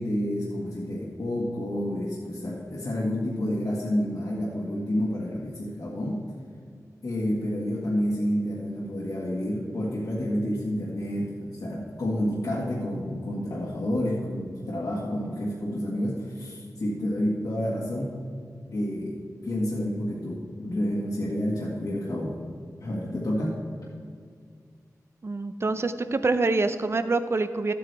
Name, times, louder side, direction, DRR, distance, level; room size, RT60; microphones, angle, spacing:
voice 1, 0.0-6.3 7.0-18.2 18.7-22.4 22.8-23.6, equal, 75° left, -6 dB, 1.6 m, -29 dB
voice 2, 25.2-27.7, right 3 dB, 40° right, 11 dB, 0.5 m, -26 dB
13.0 x 8.5 x 3.4 m, 2.1 s
wide cardioid pair, 80°, 7 cm